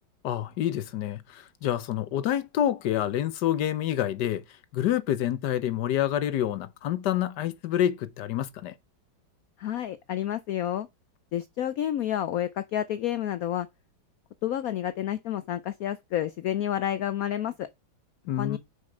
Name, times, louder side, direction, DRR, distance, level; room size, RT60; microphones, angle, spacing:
voice 1, 0.2-4.4 4.7-8.7 18.3-18.6, left 11 dB, 65° left, 1.2 m, -27 dB
voice 2, 9.6-10.9 11.3-13.7 14.4-17.7 18.4-18.6, left 11 dB, 90° left, 0.7 m, -29 dB
6.7 x 5.4 x 4.9 m
omnidirectional pair, 2.1 m